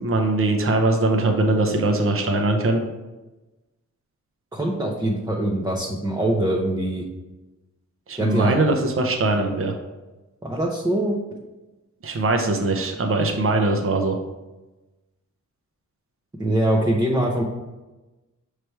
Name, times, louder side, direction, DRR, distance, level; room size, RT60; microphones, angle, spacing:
voice 1, 0.0-2.8 8.1-9.7 12.0-14.2, right 2 dB, 45° right, 3 dB, 0.8 m, -21 dB
voice 2, 4.5-7.0 8.2-8.6 10.4-11.2 16.4-17.4, right 1 dB, 10° right, -3 dB, 0.6 m, -23 dB
6.7 x 3.3 x 4.5 m, 1.1 s
wide cardioid pair, 170°, 31 cm